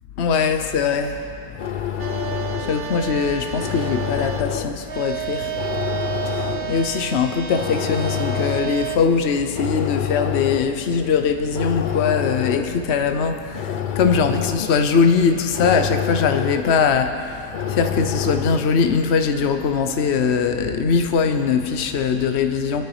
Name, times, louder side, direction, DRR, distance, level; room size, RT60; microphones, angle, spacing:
voice 1, 0.2-1.9 2.2-22.9, left 5 dB, 45° left, 7 dB, 1.0 m, -21 dB
sound 1, 1.3-18.9, left 9 dB, 80° left, 0.4 m, -29 dB
sound 2, 2.0-4.4 4.8-9.0, right 10 dB, 50° right, 0.7 m, -30 dB
25.5 x 9.5 x 5.0 m, 2.4 s
omnidirectional pair, 1.8 m